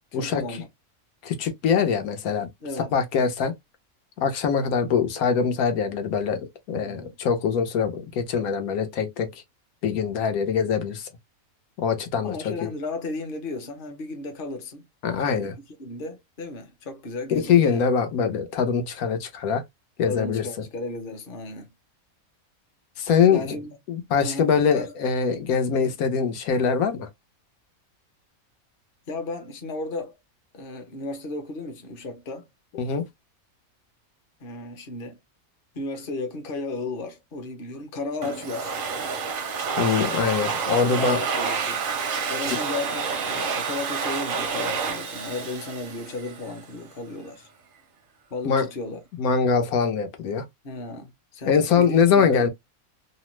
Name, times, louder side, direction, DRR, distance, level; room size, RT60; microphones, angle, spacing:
voice 1, 0.1-0.7 2.6-2.9 6.8-7.1 12.2-14.9 15.2-15.5 15.8-17.8 20.0-21.7 23.3-23.8 24.2-24.9 25.7-26.0 29.1-30.1 30.5-32.5 34.4-35.2 35.7-38.8 40.1-40.4 40.8-41.8 42.3-47.5 48.3-49.0 50.6-52.5, left 3 dB, 45° left, 0.9 m, -34 dB
voice 2, 1.2-2.5 2.8-3.5 4.2-9.3 9.8-11.1 11.8-12.7 15.0-15.5 17.5-19.6 20.0-20.5 23.0-23.6 23.9-27.1 32.7-33.0 39.8-41.2 42.5-42.6 48.4-48.7 49.2-50.4 51.4-52.5, left 6 dB, 85° left, 1.2 m, -23 dB
Domestic sounds home sounds, 38.2-46.7, right 5 dB, 60° right, 0.6 m, -29 dB
2.9 x 2.1 x 3.0 m
omnidirectional pair, 1.5 m